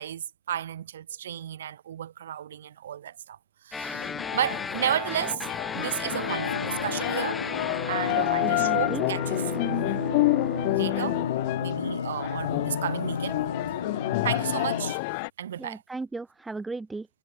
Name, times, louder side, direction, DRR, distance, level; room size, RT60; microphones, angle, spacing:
voice 1, 0.0-3.4 3.6-5.5 5.7-7.4 7.9-9.9 10.7-11.2 11.6-13.4 14.2-15.0 15.4-15.8, right 10 dB, 80° right, 0.9 m, -33 dB
sound 1, 3.7-11.3, left 4 dB, 20° left, 1.7 m, -35 dB
sound 2, 3.9-15.3, left 28 dB, 65° left, 0.8 m, -30 dB
sound 3, 6.1-14.9, left 6 dB, 90° left, 0.5 m, -32 dB
voice 2, 8.1-9.0 15.6-17.1, right 3 dB, 15° right, 0.5 m, -36 dB
hypercardioid pair, 75°, 0 cm